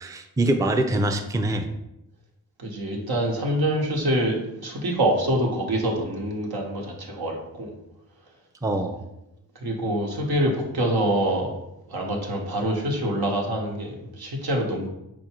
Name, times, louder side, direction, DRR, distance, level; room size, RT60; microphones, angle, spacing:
voice 1, 0.0-1.7 8.6-9.0, right 1 dB, 10° right, 6 dB, 0.4 m, -24 dB
voice 2, 2.6-7.7 9.6-11.5 11.9-14.9, right 1 dB, 80° right, 0 dB, 1.0 m, -25 dB
4.6 x 2.5 x 4.3 m, 0.86 s
cardioid pair, 50°, 37 cm